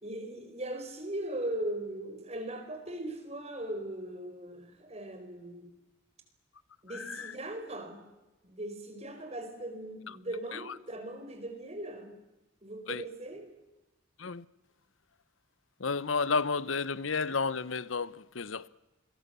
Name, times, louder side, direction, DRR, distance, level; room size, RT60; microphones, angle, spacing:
voice 1, 0.0-5.7 6.8-8.0 8.4-12.2 12.6-13.5, right 1 dB, 35° right, 4.5 m, -39 dB
voice 2, 6.9-7.3 10.1-10.2 10.5-10.7 12.9-13.0 14.2-14.4 15.8-18.7, left 4 dB, 85° left, 0.9 m, -32 dB
28.5 x 22.5 x 6.9 m
head